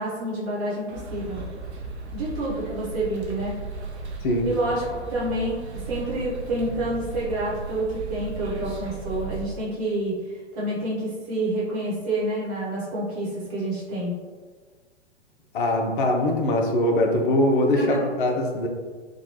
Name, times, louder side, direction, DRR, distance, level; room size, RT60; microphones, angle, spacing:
voice 1, 0.0-1.4 2.1-3.6 4.4-14.1 17.7-18.1, right 1 dB, 30° right, -9 dB, 1.1 m, -28 dB
sound 1, 0.9-9.5, right 3 dB, 75° right, 0.6 m, -36 dB
voice 2, 15.5-18.7, left 1 dB, 50° left, 1 dB, 0.5 m, -22 dB
2.9 x 2.2 x 2.9 m, 1.5 s
figure-of-eight pair, 110°, 33 cm